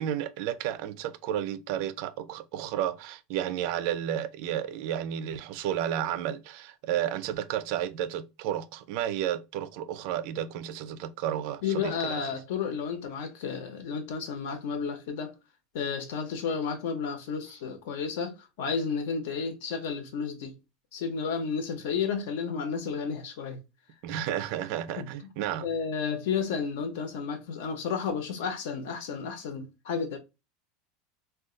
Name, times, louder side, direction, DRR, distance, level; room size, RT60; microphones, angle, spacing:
voice 1, 0.0-12.3 24.0-25.7, right 10 dB, 50° right, 0.4 m, -32 dB
voice 2, 11.6-15.3 15.7-20.5 20.9-23.6 25.0-25.3 25.6-30.2, left 6 dB, 70° left, 0.8 m, -32 dB
2.5 x 2.2 x 3.7 m
supercardioid pair, 175°, 0 cm